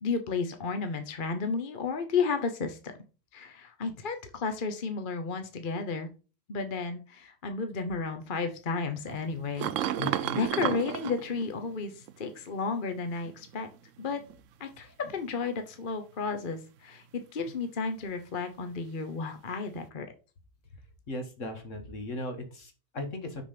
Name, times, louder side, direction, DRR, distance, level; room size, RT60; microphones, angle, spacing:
voice 1, 0.0-2.8 3.3-6.1 6.5-13.7 14.0-14.2 14.6-20.1, left 4 dB, 40° left, 7 dB, 1.0 m, -33 dB
sound 1, 9.1-12.3 13.2-14.3 15.0-15.6 19.7-19.8, right 11 dB, 70° right, 0.9 m, -34 dB
voice 2, 10.0-10.4 21.1-23.5, left 2 dB, 65° left, 5 dB, 2.0 m, -37 dB
6.6 x 5.9 x 5.1 m, 0.33 s
omnidirectional pair, 1.4 m